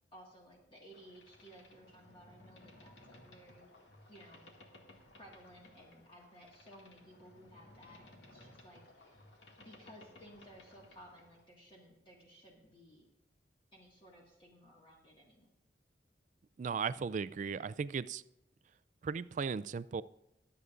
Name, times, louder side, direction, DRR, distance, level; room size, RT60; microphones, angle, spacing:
voice 1, 0.1-3.7 4.1-4.8 5.2-9.2 9.6-13.1 13.7-15.5, equal, 30° left, -2 dB, 1.7 m, -58 dB
Boat Water vehicle, 0.9-11.4, left 1 dB, 90° left, 2.0 m, -59 dB
voice 2, 16.6-18.2 19.0-20.0, right 5 dB, 45° right, 17 dB, 0.3 m, -36 dB
23.0 x 8.1 x 2.5 m, 0.91 s
head